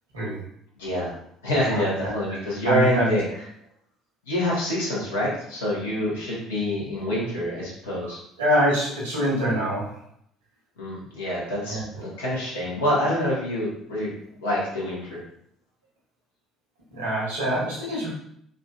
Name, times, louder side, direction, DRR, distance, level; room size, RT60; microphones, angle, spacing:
voice 1, 0.8-1.1 1.4-3.2 4.2-8.2 10.8-14.1 14.4-15.2, left 1 dB, 75° left, -6 dB, 1.2 m, -26 dB
voice 2, 2.6-3.1 8.4-10.0 11.7-11.8 16.9-18.1, equal, 80° right, -5 dB, 1.2 m, -24 dB
3.7 x 2.7 x 2.4 m, 0.70 s
figure-of-eight pair, 55°, 0 cm